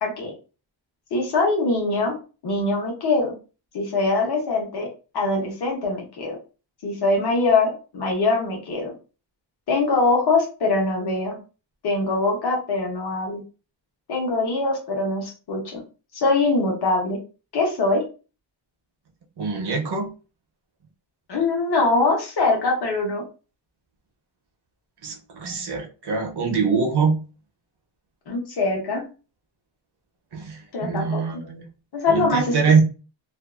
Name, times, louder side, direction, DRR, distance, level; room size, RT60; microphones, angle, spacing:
voice 1, 0.0-0.3 1.1-2.1 2.4-3.3 3.7-4.9 5.1-6.4 6.8-8.9 9.7-11.4 11.8-13.4 14.1-15.8 16.1-17.2 17.5-18.0 21.3-23.2 28.3-29.0 30.7-31.2 31.9-32.6, left 3 dB, 60° left, 0.9 m, -23 dB
voice 2, 19.4-20.1 25.0-27.2 30.3-31.6 32.1-32.8, right 5 dB, 60° right, 0.7 m, -23 dB
2.6 x 2.3 x 2.3 m
wide cardioid pair, 175°, 45 cm